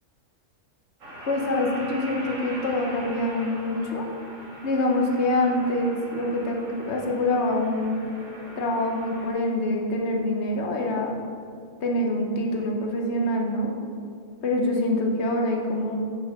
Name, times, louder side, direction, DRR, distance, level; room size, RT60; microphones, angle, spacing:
sound 1, 1.0-9.3, right 1 dB, 85° right, 1.7 m, -41 dB
voice 1, 1.3-4.1 4.6-8.0 8.6-11.1 11.8-13.7 14.4-16.0, left 1 dB, 60° left, 1 dB, 1.2 m, -25 dB
6.4 x 6.3 x 5.2 m, 2.3 s
omnidirectional pair, 1.3 m